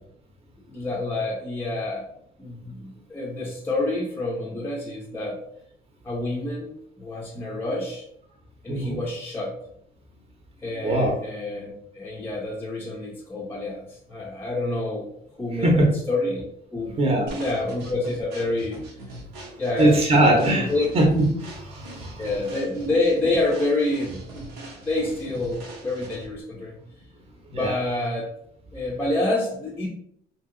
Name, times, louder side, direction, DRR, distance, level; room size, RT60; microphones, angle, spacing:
voice 1, 0.7-2.1 2.4-5.4 6.0-8.1 8.6-9.5 10.6-15.1 15.4-16.4 16.7-17.0 17.3-18.8 19.6-20.0 20.4-20.9 22.2-24.5 24.8-26.8 27.5-28.3 28.7-29.9, left 2 dB, 15° left, -3 dB, 0.5 m, -28 dB
voice 2, 8.7-9.0 10.8-11.1 15.6-15.8 17.0-17.3 19.8-22.2 27.5-27.8, right 1 dB, 35° right, 0 dB, 0.7 m, -21 dB
sound 1, 17.3-26.4, right 2 dB, 90° right, 0.8 m, -41 dB
2.8 x 2.7 x 2.5 m, 0.70 s
cardioid pair, 110°, 17 cm